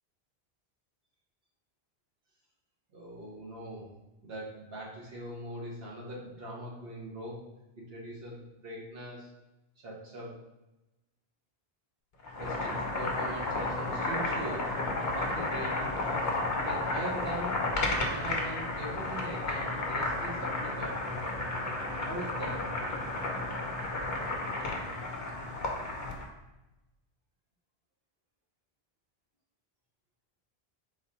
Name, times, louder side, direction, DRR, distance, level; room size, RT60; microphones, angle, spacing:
voice 1, 2.9-3.9 4.2-7.4 7.8-9.3 9.8-10.3 12.3-14.7 15.1-16.3 16.6-17.6 18.1-21.0 22.0-22.6, right 1 dB, 70° right, -3 dB, 1.3 m, -41 dB
Boiling, 12.2-26.3, left 2 dB, 50° left, 1.0 m, -32 dB
3.9 x 2.8 x 4.8 m, 0.98 s
omnidirectional pair, 1.0 m